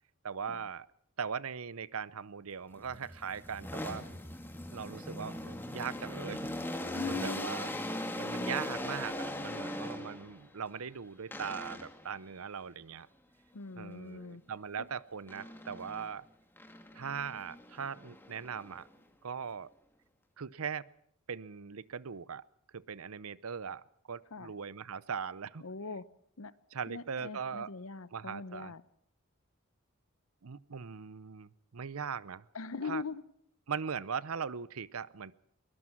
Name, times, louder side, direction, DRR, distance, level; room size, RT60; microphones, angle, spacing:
voice 1, 0.2-0.9 1.2-4.0 4.7-6.5 7.1-7.7 8.2-13.1 13.8-16.2 16.9-18.9 19.2-19.7 20.4-20.9 21.3-22.4 22.7-25.6 26.7-27.7 28.1-28.7 30.4-32.5 32.8-33.0 33.7-35.3, right 6 dB, 80° right, 0.7 m, -40 dB
sound 1, 2.8-10.4 11.3-12.1 15.3-16.1 16.6-18.9, left 1 dB, 10° left, 1.9 m, -40 dB
voice 2, 6.9-7.5 9.7-9.9 13.5-14.4 14.8-14.9 24.3-24.5 25.6-26.0 26.4-26.5 26.9-28.8 32.5-33.2, left 4 dB, 70° left, 0.9 m, -41 dB
22.0 x 20.5 x 5.9 m
head